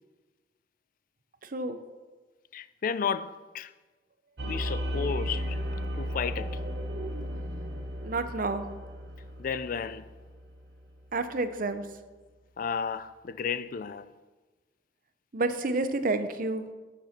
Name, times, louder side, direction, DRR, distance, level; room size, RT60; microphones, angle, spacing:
voice 1, 1.4-1.8 8.0-8.7 11.1-11.9 15.3-16.6, right 2 dB, 55° right, 0.7 m, -29 dB
voice 2, 2.5-3.7 4.4-5.6 6.0-6.6 9.4-10.1 12.6-14.1, left 6 dB, 50° left, 0.4 m, -33 dB
sound 1, 4.4-11.2, equal, 75° right, 1.0 m, -35 dB
8.7 x 6.8 x 5.9 m
head